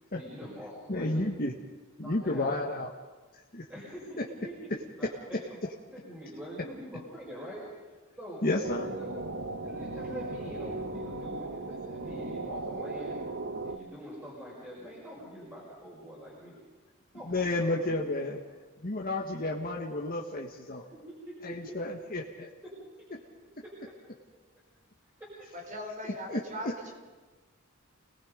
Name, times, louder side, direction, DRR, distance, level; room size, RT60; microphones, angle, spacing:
voice 1, 0.1-1.3 2.0-2.6 3.7-5.4 5.9-7.6 8.2-8.5 8.8-9.2 9.6-13.2 13.6-16.6 17.1-17.8 20.7-21.8 22.6-22.7 23.6-23.7 25.0-25.3, equal, 10° right, -6 dB, 5.8 m, -44 dB
voice 2, 0.9-1.5 2.0-2.9 3.5-3.6 8.4-8.9 17.3-18.4 18.8-20.8 21.4-22.5 26.3-26.4, left 2 dB, 45° left, -2 dB, 1.7 m, -31 dB
sound 1, 8.6-13.8, right 2 dB, 55° right, 1.1 m, -37 dB
voice 3, 25.7-27.0, equal, 40° right, 2 dB, 4.6 m, -39 dB
29.5 x 19.5 x 5.3 m, 1.3 s
head